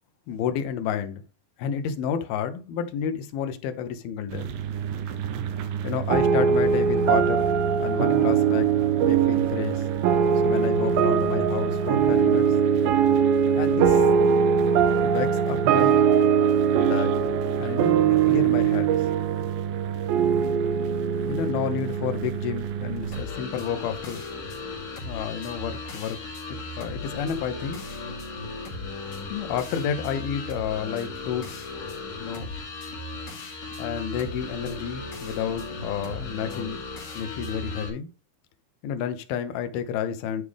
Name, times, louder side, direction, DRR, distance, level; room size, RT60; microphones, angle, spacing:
voice 1, 0.3-1.2 1.6-4.5 5.8-7.5 7.8-8.7 9.0-9.8 10.4-12.5 13.6-14.0 15.0-16.0 16.8-17.2 17.6-19.0 21.2-24.2 25.0-26.2 26.5-27.8 29.3-31.7 32.2-32.5 33.8-36.8 37.1-38.1 38.8-40.4, left 8 dB, 80° left, 2.8 m, -30 dB
sound 1, 4.3-23.2, right 9 dB, 75° right, 2.4 m, -32 dB
sound 2, 6.1-22.9, right 7 dB, 90° right, 2.6 m, -22 dB
sound 3, 23.1-37.9, left 3 dB, 60° left, 4.0 m, -36 dB
11.5 x 4.9 x 3.5 m
omnidirectional pair, 4.3 m